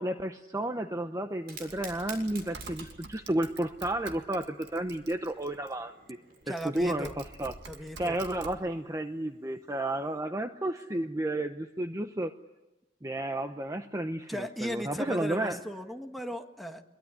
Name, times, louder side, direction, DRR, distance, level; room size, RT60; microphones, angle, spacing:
voice 1, 0.0-6.2 6.5-7.6 8.0-12.3 13.0-15.6, right 1 dB, 20° right, 7 dB, 0.9 m, -32 dB
Fire, 1.3-10.2, right 3 dB, 60° right, 7.0 m, -53 dB
Typing, 1.5-5.7 6.4-8.6, right 4 dB, 90° right, 1.9 m, -48 dB
voice 2, 6.5-7.1 7.6-8.2 14.3-16.8, equal, ahead, 4 dB, 1.7 m, -37 dB
24.5 x 22.5 x 10.0 m, 1.0 s
head